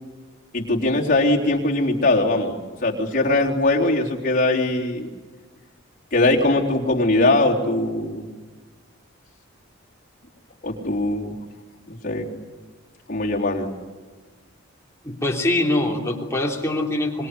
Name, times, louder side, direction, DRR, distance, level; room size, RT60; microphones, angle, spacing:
voice 1, 0.5-5.1 6.1-8.3 10.6-11.3 11.9-12.3 13.1-13.7, left 2 dB, 45° left, -2 dB, 3.8 m, -21 dB
voice 2, 15.0-17.3, left 1 dB, 15° left, -1 dB, 3.3 m, -23 dB
25.0 x 22.0 x 9.9 m, 1.3 s
head